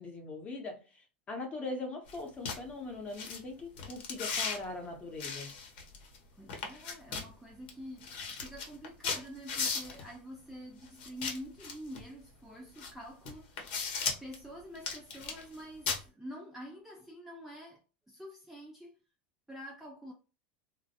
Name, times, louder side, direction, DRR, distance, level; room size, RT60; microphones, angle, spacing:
voice 1, 0.0-5.5, left 3 dB, 25° left, 0.7 m, -41 dB
sound 1, 2.1-2.2 2.4-2.6 3.1-3.4 3.8-4.6 5.2-6.2 6.5-7.3 7.7-7.8 8.0-10.0 11.0-12.0 12.8-12.9 13.2-14.3 14.7-15.5 15.9-16.0, left 5 dB, 70° left, 0.8 m, -36 dB
voice 2, 6.4-13.8 14.2-17.8 18.1-18.9 19.5-20.1, equal, 5° right, 0.4 m, -47 dB
2.1 x 2.0 x 2.7 m
supercardioid pair, 140°, 6 cm